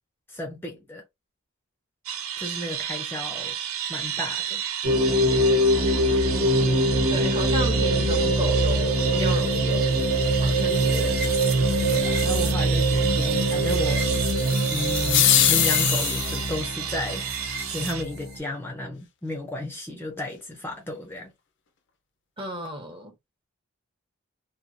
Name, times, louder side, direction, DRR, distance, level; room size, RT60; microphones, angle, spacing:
voice 1, 0.3-1.0 2.4-3.6 3.9-4.6 11.9-14.1 14.7-17.3 17.7-21.3, left 1 dB, 10° left, 0.5 m, -33 dB
sound 1, 2.1-18.0, right 9 dB, 80° right, 0.5 m, -32 dB
sound 2, 4.8-18.4, right 1 dB, 50° right, 1.1 m, -23 dB
voice 2, 6.1-9.9 10.4-11.3 22.4-23.1, equal, 25° right, 0.9 m, -34 dB
sound 3, 14.4-16.6, left 11 dB, 55° left, 0.5 m, -22 dB
2.9 x 2.3 x 2.5 m
head